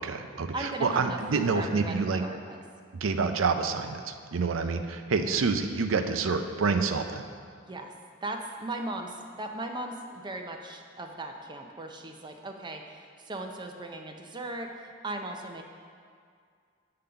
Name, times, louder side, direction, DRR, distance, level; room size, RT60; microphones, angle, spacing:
voice 1, 0.0-2.2 3.0-7.2, right 4 dB, 85° right, 7 dB, 0.5 m, -28 dB
voice 2, 0.5-2.6 5.2-5.4 7.7-7.9 8.2-15.6, right 2 dB, 25° right, 3 dB, 0.5 m, -38 dB
8.6 x 3.9 x 6.7 m, 2.1 s
head